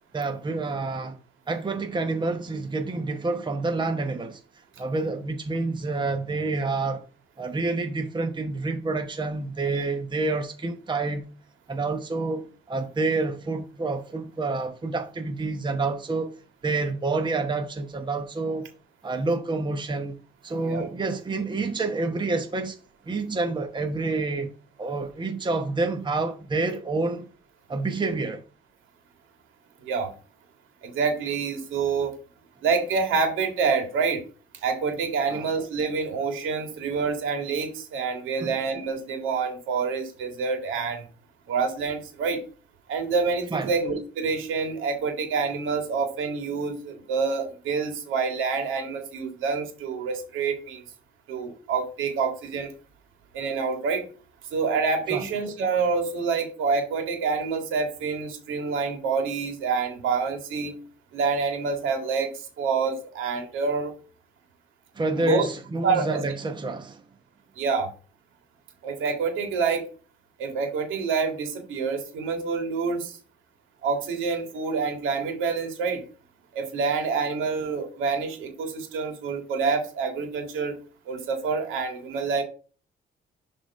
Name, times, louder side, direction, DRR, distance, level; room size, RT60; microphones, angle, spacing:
voice 1, 0.1-1.2 1.5-4.4 4.8-7.0 7.4-11.3 11.7-16.4 16.6-18.7 19.0-20.2 20.4-22.8 23.1-24.5 24.8-27.3 27.7-28.4 35.3-35.4 38.4-38.6 43.5-43.7 55.1-55.2 64.9-67.0, right 3 dB, 25° right, 0.9 m, -28 dB
voice 2, 30.8-32.1 32.6-34.2 34.6-41.0 41.5-42.4 42.9-50.8 51.3-52.7 53.3-54.1 54.5-60.7 61.1-62.3 62.6-63.9 65.1-65.4 65.8-66.2 67.6-67.9 68.8-69.9 70.4-73.1 73.8-76.0 76.5-80.8 81.1-82.4, right 5 dB, 90° right, 2.0 m, -27 dB
7.0 x 3.6 x 5.3 m
cardioid pair, 90°, 20 cm